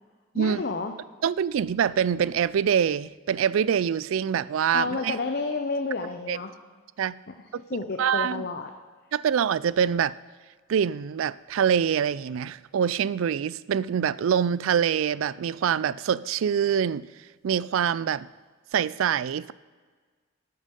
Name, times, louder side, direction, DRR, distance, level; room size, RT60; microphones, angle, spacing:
voice 1, 0.3-0.9 4.7-6.5 7.3-7.4 7.7-8.7, left 3 dB, 50° left, 0.7 m, -30 dB
voice 2, 1.2-5.1 6.3-6.4 7.0-7.2 8.0-8.5 9.1-10.2 10.7-17.1 17.4-18.3 18.7-19.5, right 8 dB, 75° right, 0.3 m, -25 dB
13.5 x 8.6 x 5.3 m
head